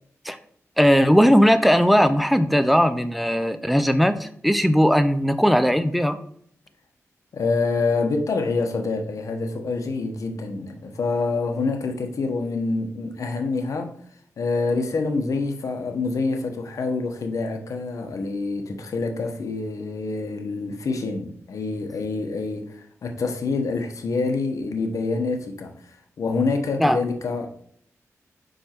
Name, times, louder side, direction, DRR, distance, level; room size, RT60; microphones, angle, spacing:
voice 1, 0.8-6.2 26.8-27.0, equal, ahead, 0.5 m, -18 dB
voice 2, 7.3-13.9 14.4-25.8 26.2-27.5, left 3 dB, 75° left, 1.0 m, -26 dB
5.3 x 5.1 x 4.4 m
wide cardioid pair, 85°, 6 cm